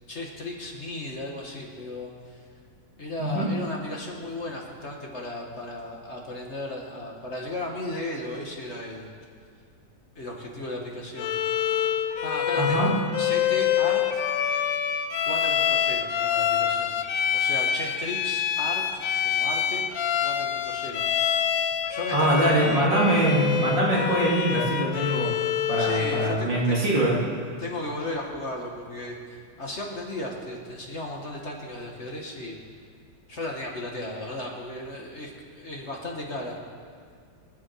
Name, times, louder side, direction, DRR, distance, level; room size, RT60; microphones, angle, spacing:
voice 1, 0.1-2.4 3.0-9.1 10.2-11.4 12.2-14.2 15.3-16.9 17.3-19.8 20.2-21.0 21.3-21.4 21.9-22.8 25.8-26.8 27.6-32.6 33.3-36.6, left 1 dB, 40° left, -1 dB, 1.9 m, -35 dB
Bowed string instrument, 11.2-26.4, left 9 dB, 85° left, 1.5 m, -26 dB
voice 2, 12.6-12.9 22.1-25.4 25.7-27.2, right 1 dB, 80° right, -5 dB, 3.6 m, -23 dB
24.5 x 9.8 x 4.8 m, 2.1 s
omnidirectional pair, 2.0 m